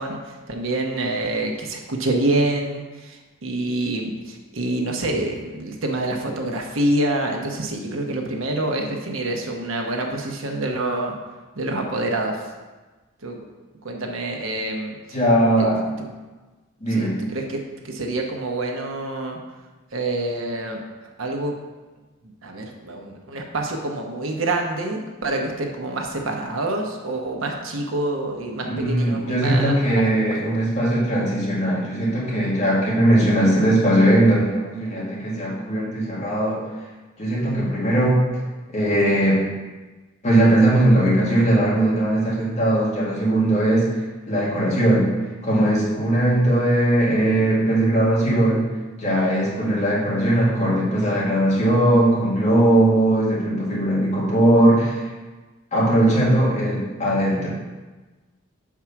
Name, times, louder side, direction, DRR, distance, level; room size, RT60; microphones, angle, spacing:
voice 1, 0.0-11.1 11.5-12.4 13.2-13.4 13.8-15.2 15.6-15.7 16.9-19.4 19.9-20.8 21.2-21.6 22.4-30.5, right 2 dB, 85° right, 2 dB, 1.0 m, -27 dB
voice 2, 15.1-15.8 16.8-17.2 28.8-36.6 37.2-38.2 38.7-39.4 40.2-43.9 44.3-45.1 45.4-48.6 49.0-55.1 55.7-57.5, right 1 dB, 35° left, -6 dB, 2.1 m, -19 dB
6.1 x 4.8 x 5.8 m, 1.2 s
head